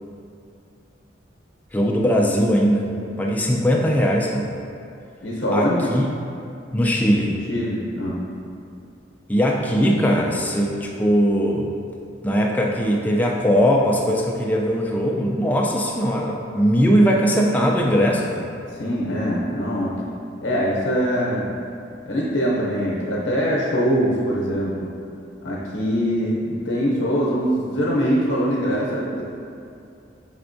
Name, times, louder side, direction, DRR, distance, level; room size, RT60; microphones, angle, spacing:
voice 1, 1.7-2.9 3.2-4.5 5.5-6.1 6.7-7.4 9.3-11.7 12.2-18.4, equal, 10° left, -1 dB, 0.3 m, -20 dB
voice 2, 5.2-5.9 7.5-8.2 18.8-19.9 20.4-21.5 22.1-24.9 25.4-29.2, equal, 80° left, -5 dB, 0.7 m, -23 dB
5.8 x 3.4 x 2.5 m, 2.6 s
head